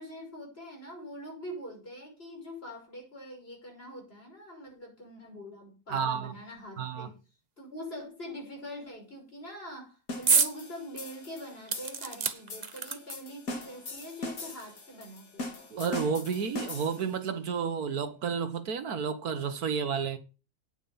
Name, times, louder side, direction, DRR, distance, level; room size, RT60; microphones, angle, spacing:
voice 1, 0.0-7.2 7.6-15.5, equal, 35° left, 6.3 m, -44 dB
voice 2, 5.9-6.3 6.8-7.1 15.7-20.2, right 6 dB, 65° right, 1.7 m, -31 dB
sound 1, 10.1-17.2, left 2 dB, 60° left, 2.6 m, -41 dB
sound 2, 10.3-10.6 11.0-11.1 11.7-13.3 14.2-14.3 14.6-14.7, right 5 dB, 35° right, 0.8 m, -28 dB
9.3 x 9.1 x 5.6 m
omnidirectional pair, 1.7 m